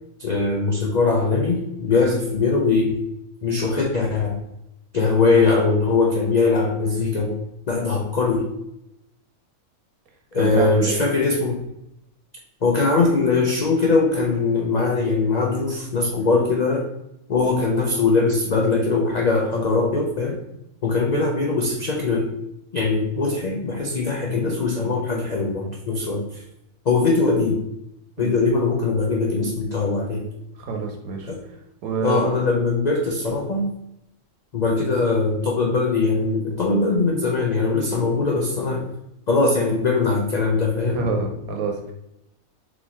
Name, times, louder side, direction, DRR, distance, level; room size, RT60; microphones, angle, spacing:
voice 1, 0.2-3.0 3.4-4.4 4.9-7.3 7.7-8.5 10.3-11.6 12.6-16.9 17.3-20.4 20.8-22.3 22.7-26.4 26.9-27.6 28.2-30.3 31.3-31.4 32.0-33.7 34.5-38.9 39.3-41.0, left 3 dB, 85° left, 0 dB, 0.3 m, -21 dB
voice 2, 10.4-11.1 28.2-28.4 30.7-31.3 31.8-32.2 40.8-41.9, right 4 dB, 90° right, 2 dB, 1.3 m, -26 dB
3.8 x 3.0 x 4.1 m, 0.85 s
omnidirectional pair, 1.5 m